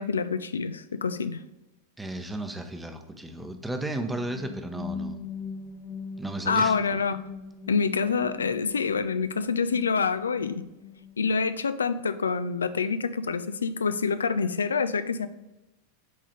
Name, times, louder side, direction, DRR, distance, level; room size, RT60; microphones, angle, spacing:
voice 1, 0.0-1.4 6.5-7.2 7.7-10.7 11.2-15.3, left 5 dB, 70° left, 13 dB, 0.4 m, -26 dB
voice 2, 2.0-5.2 6.2-6.8, right 1 dB, 5° right, 6 dB, 0.8 m, -34 dB
sound 1, 4.0-11.6, left 4 dB, 45° left, 1.0 m, -41 dB
7.8 x 3.8 x 5.0 m, 1.0 s
figure-of-eight pair, 90°, 0 cm